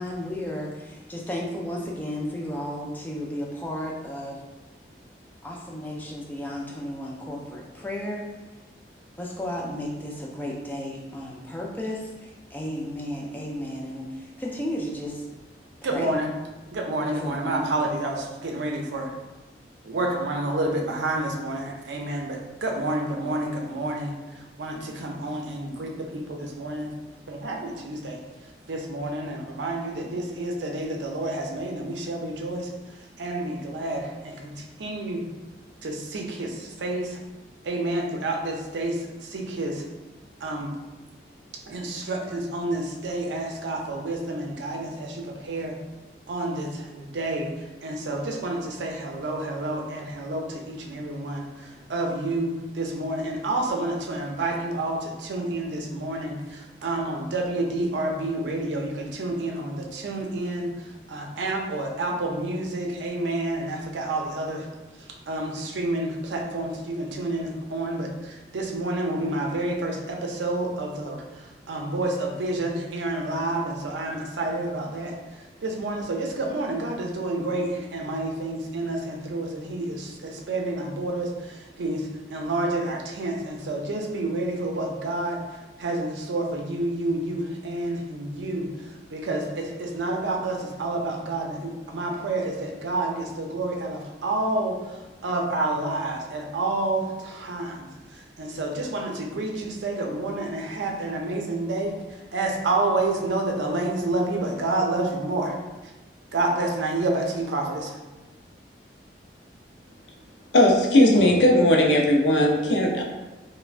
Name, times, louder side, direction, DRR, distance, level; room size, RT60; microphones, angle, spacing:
voice 1, 0.0-4.4 5.4-8.3 9.2-15.2 15.9-16.1 17.2-17.7, left 1 dB, 10° left, -2 dB, 0.3 m, -33 dB
voice 2, 15.8-16.3 16.7-19.1 19.8-24.1 24.6-26.9 27.3-28.2 28.7-32.7 33.2-35.2 35.8-37.2 37.6-39.8 40.4-40.7 41.7-45.8 46.3-47.5 47.8-60.7 61.1-64.7 65.3-75.2 75.6-85.4 85.8-88.7 89.1-95.0 95.2-97.9 98.4-102.0 102.3-105.6 106.3-108.0, right 2 dB, 85° right, 1 dB, 0.5 m, -29 dB
voice 3, 110.5-113.0, left 1 dB, 85° left, 0 dB, 0.5 m, -18 dB
3.2 x 2.1 x 2.4 m, 1.1 s
head